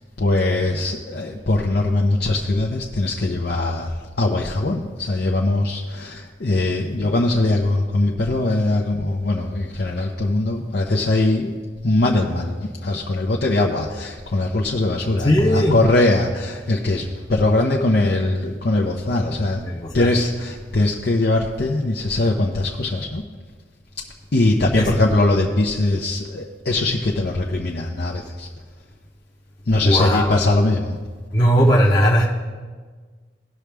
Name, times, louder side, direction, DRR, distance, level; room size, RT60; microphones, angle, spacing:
voice 1, 0.2-11.6 11.8-19.6 19.9-23.2 24.3-28.5 29.7-31.0, left 2 dB, 60° left, -1 dB, 0.7 m, -21 dB
voice 2, 15.2-15.8 19.6-20.1 24.7-24.9 29.8-30.3 31.3-32.3, equal, 20° left, -4 dB, 0.9 m, -17 dB
18.0 x 6.2 x 3.4 m, 1.5 s
head